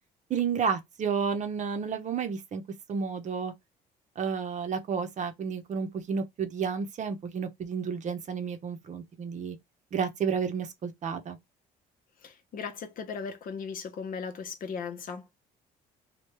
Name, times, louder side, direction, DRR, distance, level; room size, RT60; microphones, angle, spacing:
voice 1, 0.3-2.6 2.9-3.5 4.2-9.6 9.9-11.4, right 6 dB, 45° right, 0.8 m, -31 dB
voice 2, 12.2-15.3, left 5 dB, 55° left, 0.9 m, -37 dB
3.1 x 2.2 x 3.2 m
cardioid pair, 110°, 17 cm